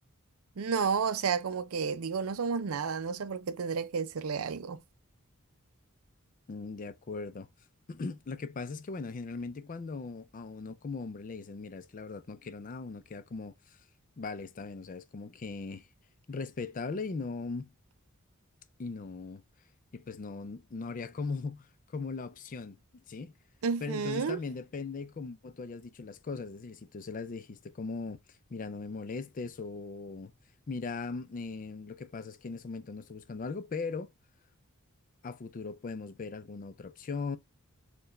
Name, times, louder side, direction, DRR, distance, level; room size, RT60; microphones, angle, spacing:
voice 1, 0.6-4.8 23.6-24.4, right 5 dB, 75° right, 0.5 m, -31 dB
voice 2, 6.5-7.5 7.9-13.8 14.2-15.9 16.3-17.7 18.8-19.4 19.9-22.8 23.1-23.3 23.8-28.2 28.5-30.3 30.7-34.1 35.2-37.4, left 4 dB, 40° left, 0.4 m, -39 dB
4.5 x 2.3 x 3.0 m
head